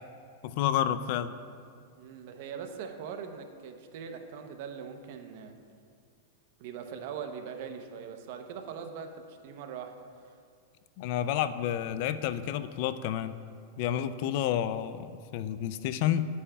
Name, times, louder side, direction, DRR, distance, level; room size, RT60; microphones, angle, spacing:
voice 1, 0.4-1.3 11.0-13.4 13.8-16.3, left 10 dB, 50° left, 13 dB, 0.3 m, -30 dB
voice 2, 2.0-5.5 6.6-10.0 10.2-10.3, right 7 dB, 55° right, 6 dB, 0.7 m, -41 dB
10.0 x 8.4 x 2.3 m, 2.2 s
supercardioid pair, 145°, 0 cm